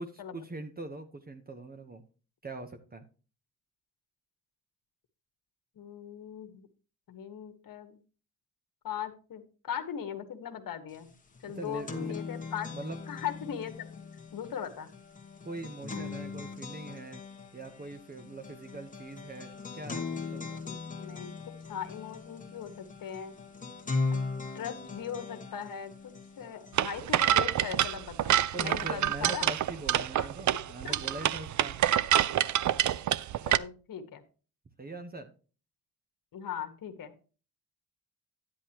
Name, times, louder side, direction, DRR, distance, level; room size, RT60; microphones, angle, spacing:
voice 1, 0.0-2.0 2.4-3.0 11.6-12.2 12.7-13.0 15.4-17.2 17.5-20.6 28.5-31.8 34.8-35.3, right 2 dB, 25° right, 7 dB, 1.0 m, -42 dB
voice 2, 5.7-6.7 7.1-8.0 8.8-9.4 9.7-11.1 11.4-12.7 13.1-14.0 14.3-14.9 20.6-21.3 21.7-23.3 24.5-29.5 30.8-31.0 33.4-34.2 36.3-37.1, left 8 dB, 60° left, 7 dB, 1.5 m, -39 dB
sound 1, 10.9-11.0 11.3-26.9, left 4 dB, 20° left, 1.4 m, -39 dB
sound 2, 26.8-33.6, right 11 dB, 50° right, 0.5 m, -27 dB
10.5 x 9.7 x 2.9 m, 0.36 s
cardioid pair, 135°, 37 cm